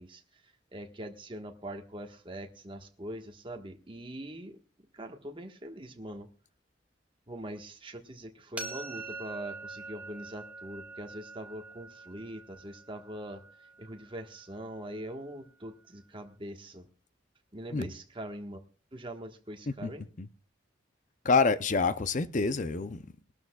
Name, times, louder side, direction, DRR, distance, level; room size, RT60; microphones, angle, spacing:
voice 1, 0.0-4.6 4.9-6.3 7.3-13.4 13.8-16.9 17.5-18.6 18.9-20.0, right 1 dB, 25° right, 1.4 m, -42 dB
sound 1, 8.6-14.4, right 3 dB, 5° right, 1.6 m, -44 dB
voice 2, 19.7-20.3 21.2-23.3, left 4 dB, 40° left, 0.6 m, -28 dB
22.0 x 12.5 x 2.3 m
head